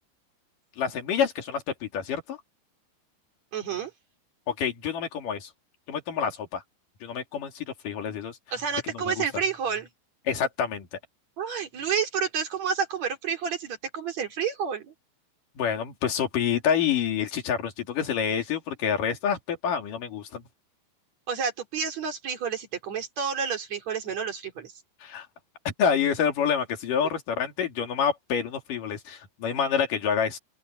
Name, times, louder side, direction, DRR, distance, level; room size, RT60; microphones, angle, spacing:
voice 1, 0.8-2.4 4.5-5.5 5.9-6.6 7.0-8.4 8.9-9.2 10.3-11.0 15.6-20.4 25.0-25.3 25.7-30.4, left 7 dB, 50° left, 3.7 m, -27 dB
voice 2, 3.5-3.9 8.5-9.9 11.4-14.9 21.3-24.7, right 6 dB, 40° right, 3.7 m, -30 dB
open air
omnidirectional pair, 5.3 m